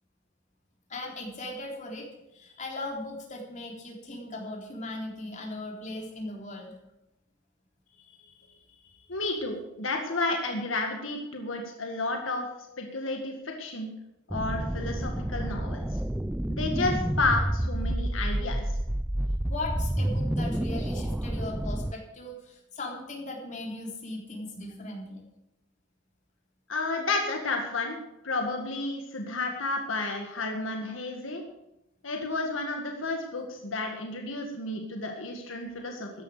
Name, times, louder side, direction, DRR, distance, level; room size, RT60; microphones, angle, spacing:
voice 1, 0.9-2.1 2.3-6.7 8.0-9.1 19.5-25.2, left 2 dB, 40° left, 0 dB, 3.5 m, -38 dB
voice 2, 9.1-12.5 12.8-13.9 14.3-15.9 16.5-18.7 26.7-28.0 28.2-31.4 32.0-36.1, left 3 dB, 80° left, 2 dB, 1.9 m, -31 dB
sound 1, 14.3-21.9, right 1 dB, 5° right, 0.3 m, -29 dB
14.0 x 10.5 x 5.0 m, 0.89 s
head